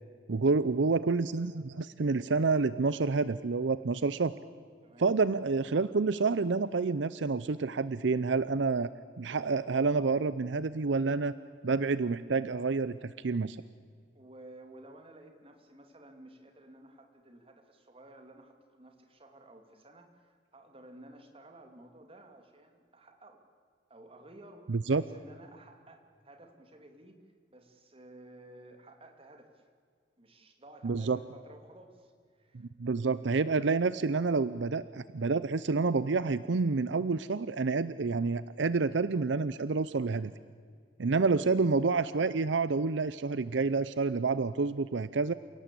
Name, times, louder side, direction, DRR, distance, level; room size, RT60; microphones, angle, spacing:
voice 1, 0.3-4.3 5.0-8.9 9.2-11.3 11.6-13.6 24.7-25.0 30.8-31.2 32.5-40.3 41.0-45.3, right 4 dB, 75° right, 16 dB, 0.6 m, -28 dB
voice 2, 4.8-5.1 14.1-23.4 23.9-27.2 27.5-29.7 30.2-33.1 41.2-41.5, right 1 dB, 30° right, 5 dB, 2.6 m, -54 dB
28.5 x 17.5 x 8.4 m, 2.1 s
head